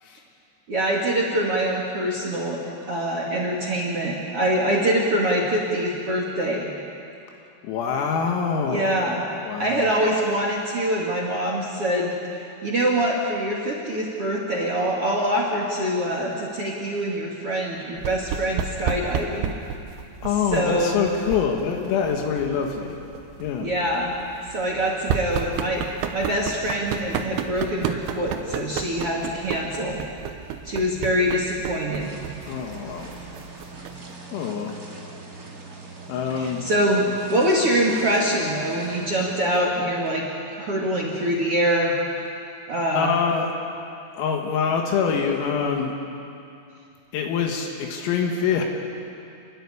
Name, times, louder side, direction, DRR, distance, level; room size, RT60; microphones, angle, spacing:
voice 1, 0.7-2.6 2.9-6.7 8.7-9.3 9.6-19.5 20.5-21.0 23.6-24.2 24.5-30.0 30.6-32.1 36.4-40.2 40.6-42.0 42.7-43.2, right 1 dB, 55° right, -2 dB, 1.6 m, -24 dB
voice 2, 7.6-8.9 9.4-10.0 20.2-23.1 23.4-23.7 32.5-33.2 34.3-34.8 36.1-37.1 42.9-43.5 44.1-45.9 47.1-48.6, left 6 dB, 85° left, 2 dB, 4.3 m, -25 dB
sound 1, 18.0-34.1, right 8 dB, 75° right, 2.9 m, -33 dB
sound 2, 32.0-39.4, right 3 dB, 30° right, 1.6 m, -41 dB
29.0 x 13.0 x 9.8 m, 2.6 s
omnidirectional pair, 6.0 m